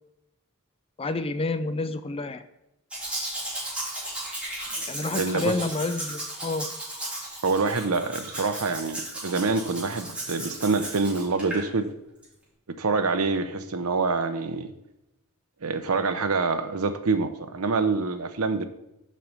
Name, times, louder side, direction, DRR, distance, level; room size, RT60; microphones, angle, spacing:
voice 1, 1.0-2.4 4.9-6.7, left 2 dB, 25° left, 11 dB, 0.5 m, -29 dB
Domestic sounds home sounds, 2.9-11.6 12.2-12.3, right 1 dB, 5° right, 3.1 m, -35 dB
voice 2, 5.2-5.6 7.4-11.9 12.7-14.7 15.6-18.7, right 4 dB, 75° right, 9 dB, 0.8 m, -26 dB
7.5 x 5.3 x 6.9 m, 0.86 s
head